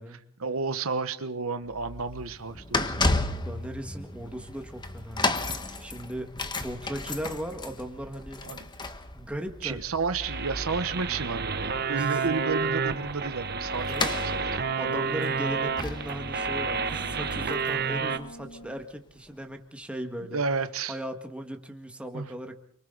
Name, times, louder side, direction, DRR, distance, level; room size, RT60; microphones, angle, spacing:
voice 1, 0.4-3.0 5.7-5.9 8.4-8.7 9.6-14.3 20.3-21.0 22.1-22.3, right 4 dB, 90° right, 11 dB, 1.1 m, -31 dB
sound 1, 1.7-18.6 19.3-19.4, left 2 dB, 20° left, 1.2 m, -34 dB
voice 2, 3.4-8.4 9.1-9.8 12.0-12.1 13.9-20.4 20.9-22.6, equal, 5° right, 4 dB, 1.9 m, -38 dB
sound 2, 10.2-18.2, right 5 dB, 50° right, 1.1 m, -30 dB
Brass instrument, 14.6-19.0, equal, 60° left, 1.4 m, -46 dB
29.5 x 23.5 x 4.0 m, 0.64 s
head